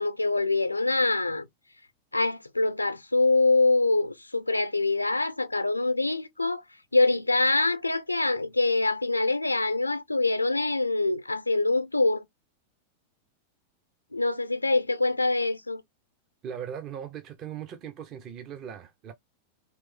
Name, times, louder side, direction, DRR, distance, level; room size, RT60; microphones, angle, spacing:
voice 1, 0.0-1.5 2.1-6.6 6.9-12.2 14.1-15.8, left 3 dB, 85° left, 0.6 m, -25 dB
voice 2, 16.4-19.1, right 8 dB, 35° right, 0.6 m, -39 dB
3.1 x 3.1 x 3.4 m
figure-of-eight pair, 90°, 0 cm